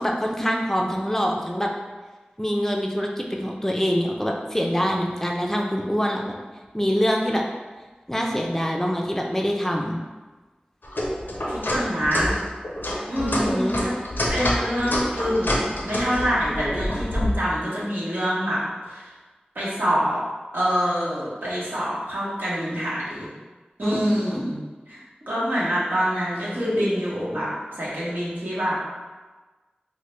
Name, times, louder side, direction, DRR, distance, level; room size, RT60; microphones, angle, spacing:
voice 1, 0.0-1.7 2.4-6.2 6.7-7.4 8.1-10.0 13.2-13.8 23.8-24.4, equal, 10° left, 0 dB, 0.4 m, -25 dB
sound 1, 10.8-17.4, left 1 dB, 85° left, 0.5 m, -27 dB
voice 2, 11.5-12.3 13.1-13.9 14.3-18.6 18.9-19.1 19.5-20.2 20.5-23.3 23.8-24.5 24.9-25.0 25.3-28.8, equal, 85° right, -9 dB, 1.0 m, -26 dB
3.1 x 2.1 x 3.0 m, 1.3 s
wide cardioid pair, 45°, 3 cm